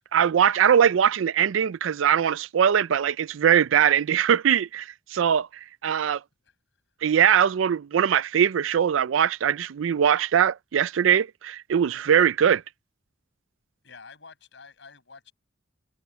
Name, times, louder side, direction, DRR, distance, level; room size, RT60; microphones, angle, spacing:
voice 1, 0.1-5.5 5.8-6.2 7.0-12.6, right 8 dB, 85° right, 0.4 m, -21 dB
voice 2, 13.8-15.3, left 4 dB, 65° left, 8.0 m, -48 dB
head